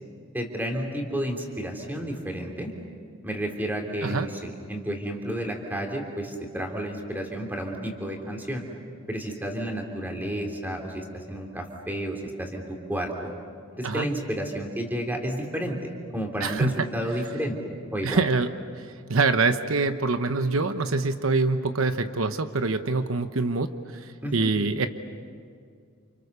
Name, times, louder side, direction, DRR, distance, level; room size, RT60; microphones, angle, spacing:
voice 1, 0.3-2.7 3.2-8.6 9.1-13.3 13.7-15.8 16.1-17.6 17.9-18.2 24.2-24.3, equal, 10° right, 2 dB, 3.3 m, -31 dB
voice 2, 16.4-16.9 18.0-24.9, right 3 dB, 75° right, 9 dB, 1.0 m, -25 dB
29.5 x 29.0 x 6.9 m, 2.2 s
head